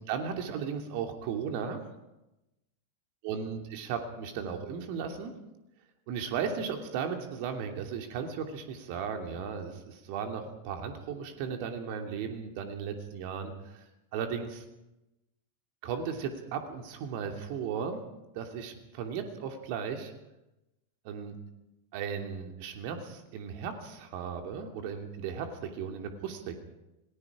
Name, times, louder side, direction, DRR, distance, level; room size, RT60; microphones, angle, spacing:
voice 1, 0.1-1.8 3.2-5.3 6.1-13.8 14.1-14.6 15.8-18.0 18.3-20.1 21.0-21.3 21.9-26.6, right 7 dB, 45° right, 4 dB, 2.7 m, -36 dB
28.5 x 19.0 x 5.0 m, 0.93 s
figure-of-eight pair, 90°, 0 cm